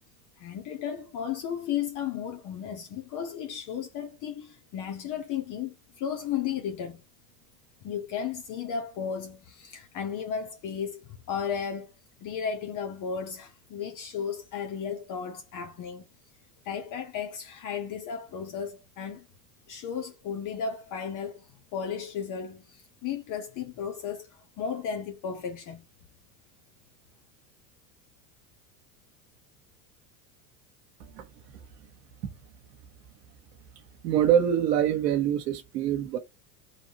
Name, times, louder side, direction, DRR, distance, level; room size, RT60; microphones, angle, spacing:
voice 1, 0.4-7.0 7.8-11.9 12.2-16.0 16.6-19.2 19.7-21.5 21.7-25.8, left 7 dB, 40° left, 0.8 m, -34 dB
voice 2, 34.0-36.2, right 10 dB, 80° right, 0.9 m, -24 dB
4.0 x 2.9 x 2.8 m
hypercardioid pair, 90°, 48 cm